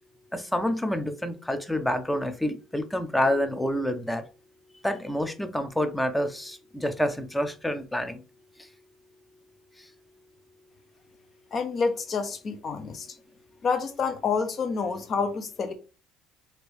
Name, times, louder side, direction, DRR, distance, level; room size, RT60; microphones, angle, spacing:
voice 1, 0.3-4.2 4.8-8.2, left 1 dB, 5° left, 9 dB, 0.5 m, -28 dB
voice 2, 11.5-13.1 13.6-15.7, left 5 dB, 45° left, 8 dB, 0.7 m, -28 dB
3.0 x 2.6 x 3.1 m, 0.33 s
supercardioid pair, 80°, 0 cm